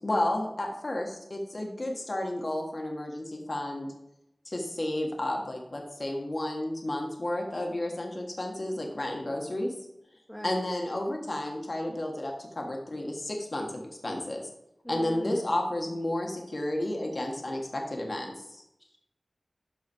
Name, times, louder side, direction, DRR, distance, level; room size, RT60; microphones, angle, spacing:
voice 1, 0.0-3.9 4.4-9.7 10.4-14.4 14.9-18.6, left 1 dB, 50° left, 0 dB, 1.6 m, -32 dB
voice 2, 10.3-10.6 14.8-15.5 18.8-19.0, equal, 5° left, -2 dB, 1.3 m, -40 dB
12.5 x 4.2 x 4.5 m, 0.84 s
wide cardioid pair, 60°, 0 cm